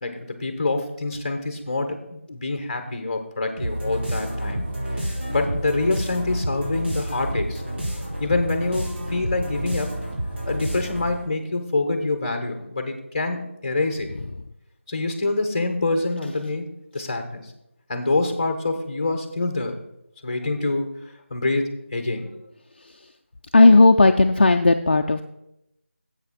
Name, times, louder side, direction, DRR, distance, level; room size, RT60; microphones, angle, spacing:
voice 1, 0.0-4.6 4.9-7.6 8.2-10.0 10.4-14.1 14.9-17.5 17.9-19.8 20.2-20.9 21.3-22.3, left 2 dB, 25° left, 6 dB, 1.2 m, -26 dB
sound 1, 3.6-11.3, right 1 dB, 55° right, 4.4 m, -29 dB
voice 2, 23.5-25.2, left 3 dB, 45° left, 5 dB, 0.5 m, -14 dB
11.0 x 7.9 x 4.2 m, 0.83 s
figure-of-eight pair, 175°, 7 cm